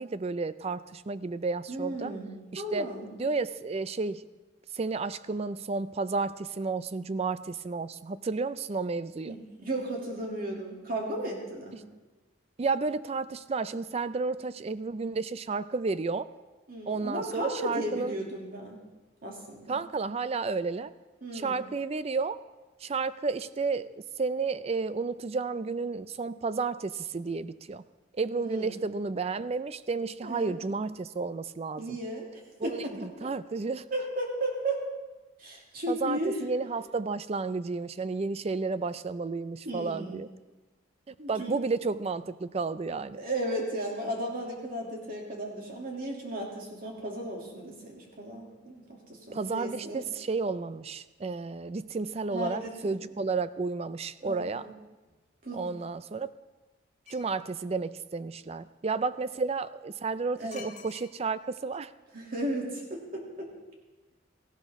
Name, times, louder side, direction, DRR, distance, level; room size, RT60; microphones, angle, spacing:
voice 1, 0.0-2.1 2.5-2.9 3.2-4.2 4.7-9.4 12.6-16.3 16.9-18.2 19.7-20.9 21.3-22.4 22.8-27.8 28.1-32.0 32.6-33.9 35.9-40.3 41.1-43.2 49.3-54.7 55.5-56.3 57.1-61.9, right 4 dB, 30° right, 15 dB, 0.4 m, -32 dB
voice 2, 1.7-3.1 9.2-11.8 16.7-18.8 19.2-19.8 21.2-21.6 28.3-28.7 30.2-30.6 31.8-33.3 33.9-34.8 35.4-36.4 39.6-40.2 41.2-41.6 43.2-50.0 52.3-53.0 54.2-54.7 55.4-55.6 60.4-60.7 62.1-63.5, right 1 dB, 45° right, -1 dB, 2.7 m, -35 dB
sound 1, 57.1-57.4 60.5-61.5 61.7-61.8, left 6 dB, 35° left, 1.0 m, -48 dB
17.5 x 15.0 x 3.6 m, 1.2 s
head